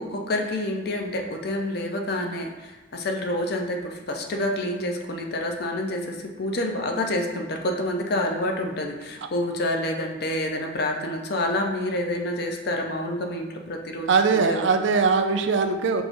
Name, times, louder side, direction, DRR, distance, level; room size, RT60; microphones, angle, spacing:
voice 1, 0.0-14.7, left 1 dB, 50° left, 3 dB, 0.5 m, -28 dB
voice 2, 14.1-16.0, right 5 dB, 60° right, 7 dB, 0.3 m, -21 dB
4.7 x 2.5 x 3.8 m, 1.2 s
head